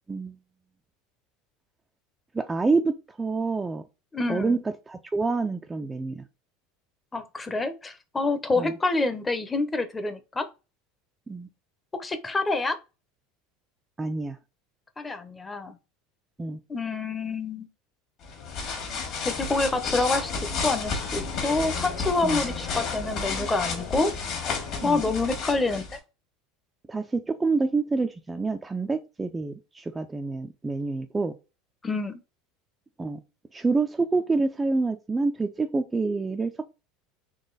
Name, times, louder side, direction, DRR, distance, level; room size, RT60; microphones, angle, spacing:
voice 1, 2.3-3.8 4.3-4.6 4.9-6.2 8.6-8.7 11.3-11.5 14.0-14.4 16.4-16.6 22.2-22.4 24.8-25.0 26.9-31.3 33.0-33.2 33.5-36.6, right 3 dB, 15° right, 0.4 m, -27 dB
voice 2, 4.1-4.6 7.1-10.5 12.0-12.8 15.0-15.7 16.7-17.7 19.2-24.1 24.8-25.8 31.8-32.2, left 3 dB, 15° left, 0.7 m, -27 dB
sound 1, 18.2-26.0, left 4 dB, 50° left, 1.7 m, -31 dB
4.0 x 3.0 x 3.9 m
supercardioid pair, 110°, 0 cm